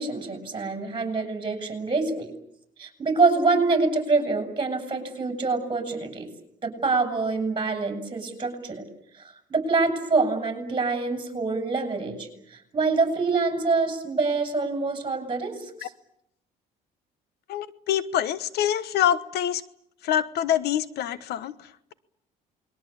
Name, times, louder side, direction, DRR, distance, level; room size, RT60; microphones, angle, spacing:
voice 1, 0.0-2.3 2.8-6.3 6.6-8.8 9.2-15.9, right 3 dB, 25° right, 6 dB, 7.4 m, -26 dB
voice 2, 17.5-19.6 20.0-21.9, left 10 dB, 70° left, 15 dB, 1.2 m, -26 dB
28.5 x 22.0 x 8.7 m, 0.75 s
cardioid pair, 110°, 17 cm